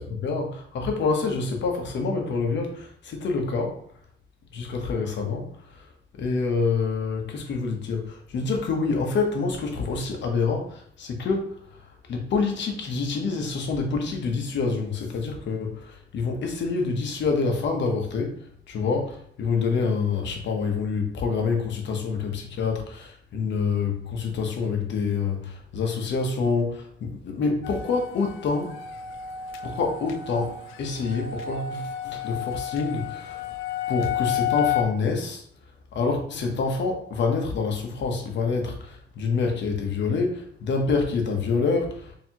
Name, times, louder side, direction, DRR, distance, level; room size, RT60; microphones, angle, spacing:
voice 1, 0.1-3.8 4.5-5.5 6.2-11.6 12.1-18.3 18.7-28.7 29.6-30.5 30.8-33.4 33.9-35.4 35.9-42.1, left 4 dB, 65° left, 2 dB, 1.1 m, -27 dB
sound 1, 27.6-34.8, left 10 dB, 85° left, 0.4 m, -31 dB
4.5 x 3.1 x 2.9 m, 0.64 s
cardioid pair, 90°, 20 cm